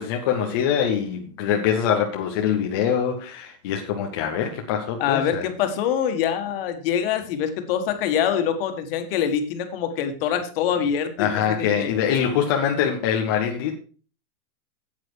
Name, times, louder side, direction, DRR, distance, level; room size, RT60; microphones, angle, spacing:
voice 1, 0.0-5.5 11.2-13.7, left 8 dB, 15° left, 0.5 m, -24 dB
voice 2, 5.0-11.9, left 8 dB, 40° left, 1.6 m, -25 dB
9.3 x 8.5 x 4.6 m
supercardioid pair, 165°, 45 cm